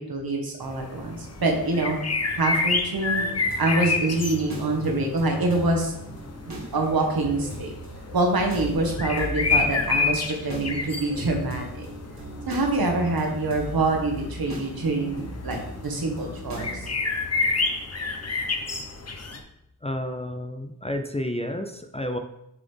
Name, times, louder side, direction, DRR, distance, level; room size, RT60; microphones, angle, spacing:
voice 1, 0.0-2.0 2.3-3.2 3.6-5.9 6.4-7.7 8.1-11.9 12.5-16.9, right 2 dB, 65° right, 1 dB, 1.4 m, -25 dB
sound 1, 0.6-19.4, left 4 dB, 40° left, 0.9 m, -30 dB
sound 2, 3.1-16.9, equal, 45° right, 1.7 m, -39 dB
voice 2, 19.8-22.2, left 1 dB, 15° left, 6 dB, 0.5 m, -30 dB
7.3 x 4.1 x 3.4 m, 0.82 s
cardioid pair, 60°, 39 cm